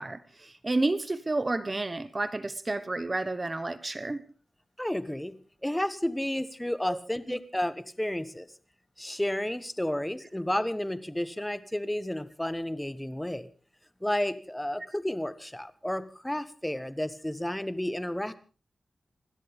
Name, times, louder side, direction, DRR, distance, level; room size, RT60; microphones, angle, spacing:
voice 1, 0.0-4.2 6.9-7.0 7.3-7.4, right 2 dB, 25° right, 1.2 m, -30 dB
voice 2, 4.8-8.5 9.0-13.5 14.0-18.4, left 1 dB, 5° left, 1.1 m, -32 dB
27.5 x 13.0 x 3.5 m
wide cardioid pair, 125°, 0 cm